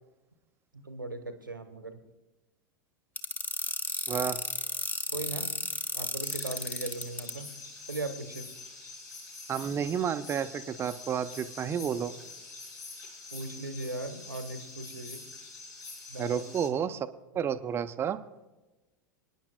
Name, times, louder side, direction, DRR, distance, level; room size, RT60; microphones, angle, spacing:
voice 1, 0.8-2.0 5.1-5.5 5.9-7.5 7.9-8.5 13.3-15.3 16.1-16.4, right 2 dB, 85° right, 8 dB, 1.1 m, -38 dB
sound 1, 3.2-7.3, left 2 dB, 15° left, 1.1 m, -33 dB
voice 2, 4.1-4.4 9.5-12.1 16.2-17.1 17.3-18.2, right 8 dB, 25° right, 11 dB, 0.6 m, -31 dB
sound 2, 6.2-16.7, left 3 dB, 65° left, 4.7 m, -46 dB
26.5 x 10.0 x 2.2 m, 1.1 s
figure-of-eight pair, 90°, 11 cm